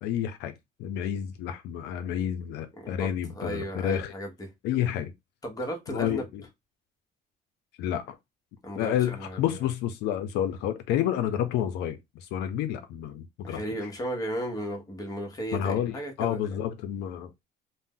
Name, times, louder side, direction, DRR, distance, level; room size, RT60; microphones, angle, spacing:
voice 1, 0.0-0.5 0.8-4.1 4.6-5.1 5.9-6.4 7.8-8.2 8.7-13.6 15.5-17.4, left 10 dB, 85° left, 0.5 m, -30 dB
voice 2, 2.8-4.5 5.4-6.2 8.6-9.4 13.4-16.6, equal, 20° left, 1.1 m, -35 dB
2.6 x 2.1 x 3.6 m
cardioid pair, 110°, 17 cm